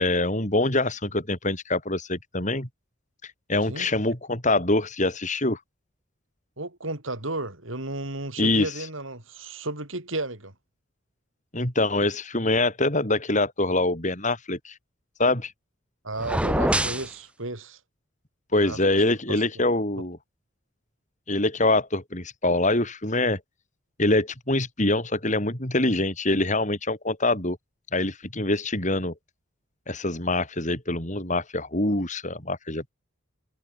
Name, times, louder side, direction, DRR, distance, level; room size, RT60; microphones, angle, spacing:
voice 1, 0.0-2.7 3.2-5.6 8.4-8.7 11.5-14.8 15.2-15.5 18.5-20.2 21.3-23.4 24.0-27.6 27.9-29.1 29.9-32.9, left 2 dB, 40° left, 6.1 m, -24 dB
voice 2, 6.6-10.5 16.0-17.8 18.5-18.8 19.3-19.4, right 2 dB, 80° right, 6.5 m, -33 dB
sound 1, 16.2-17.1, right 1 dB, 5° right, 5.3 m, -24 dB
head